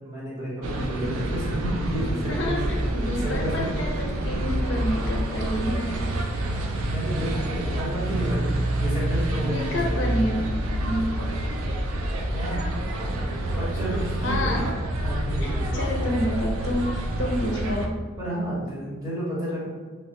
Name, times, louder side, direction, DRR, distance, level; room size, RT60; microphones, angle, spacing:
voice 1, 0.0-2.6 3.1-3.7 6.8-9.9 12.3-12.6 13.5-14.6 15.1-15.8 18.2-19.7, right 1 dB, 20° right, -9 dB, 1.0 m, -31 dB
sound 1, 0.6-17.9, right 1 dB, 80° right, 0.4 m, -27 dB
voice 2, 2.1-2.6 2.9-6.0 6.8-6.9 9.4-10.4 10.8-11.2 14.2-14.6 15.4-17.9, left 1 dB, 60° left, -1 dB, 0.5 m, -29 dB
3.2 x 2.1 x 2.9 m, 1.5 s
head